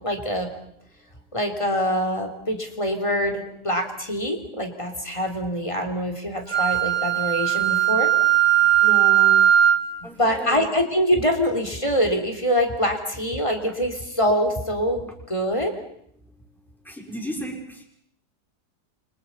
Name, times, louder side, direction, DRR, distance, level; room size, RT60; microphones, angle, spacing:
voice 1, 0.0-0.5 1.3-8.1 10.0-15.7, equal, 15° left, 4 dB, 3.6 m, -24 dB
Wind instrument woodwind instrument, 6.5-9.9, right 11 dB, 40° right, 2.1 m, -18 dB
voice 2, 8.6-9.5 10.0-10.6 16.8-17.8, equal, ahead, 0 dB, 6.0 m, -34 dB
30.0 x 25.5 x 5.6 m, 0.69 s
omnidirectional pair, 1.8 m